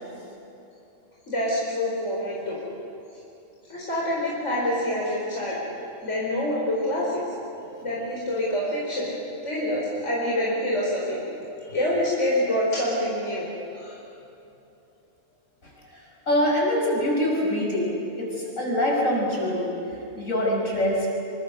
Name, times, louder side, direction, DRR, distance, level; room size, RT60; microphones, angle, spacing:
voice 1, 1.3-2.6 3.7-5.6 6.0-7.2 7.8-9.1 9.4-11.2 11.7-13.5 13.7-14.0, left 1 dB, 60° left, -5 dB, 4.6 m, -26 dB
voice 2, 15.6-21.1, equal, 80° left, -2 dB, 6.5 m, -25 dB
26.0 x 24.5 x 6.6 m, 2.9 s
omnidirectional pair, 1.4 m